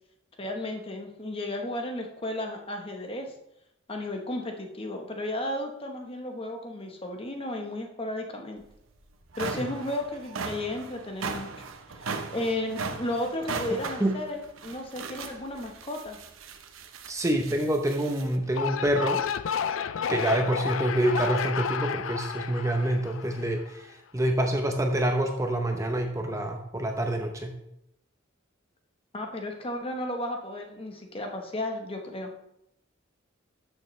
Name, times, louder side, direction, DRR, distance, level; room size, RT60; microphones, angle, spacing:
voice 1, 0.4-3.3 3.9-8.6 9.4-11.5 12.3-16.2 29.1-32.3, left 1 dB, 30° left, 3 dB, 1.1 m, -33 dB
sound 1, 8.6-8.7 9.1-18.4, right 4 dB, 85° right, 0.8 m, -38 dB
voice 2, 13.7-14.2 17.1-19.2 20.1-27.5, right 1 dB, 15° right, 3 dB, 0.7 m, -27 dB
sound 2, 18.4-23.8, left 7 dB, 75° left, 0.4 m, -31 dB
12.0 x 6.8 x 3.2 m, 0.81 s
head